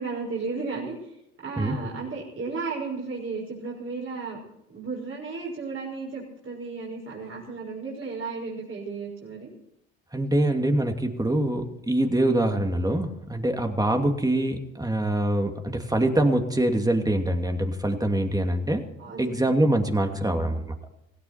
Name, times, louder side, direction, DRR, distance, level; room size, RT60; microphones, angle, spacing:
voice 1, 0.0-4.4 4.7-9.5 19.0-19.6 20.1-20.5, right 4 dB, 40° right, -4 dB, 6.1 m, -34 dB
voice 2, 10.1-18.8 19.2-20.8, right 1 dB, 10° right, 4 dB, 2.7 m, -24 dB
17.5 x 17.0 x 4.4 m, 0.84 s
hypercardioid pair, 60°, 34 cm